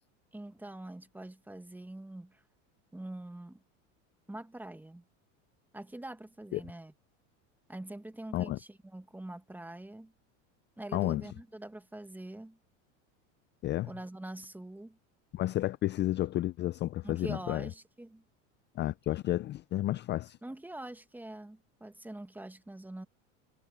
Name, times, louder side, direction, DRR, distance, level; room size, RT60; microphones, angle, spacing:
voice 1, 0.3-2.4 2.9-3.6 4.3-5.0 5.7-6.9 7.7-10.1 10.8-12.6 13.8-15.0 17.0-18.2 20.4-23.1, right 1 dB, 5° right, 1.3 m, -44 dB
voice 2, 15.3-17.7 18.8-20.4, left 14 dB, 30° left, 0.4 m, -31 dB
supercardioid pair, 120°, 37 cm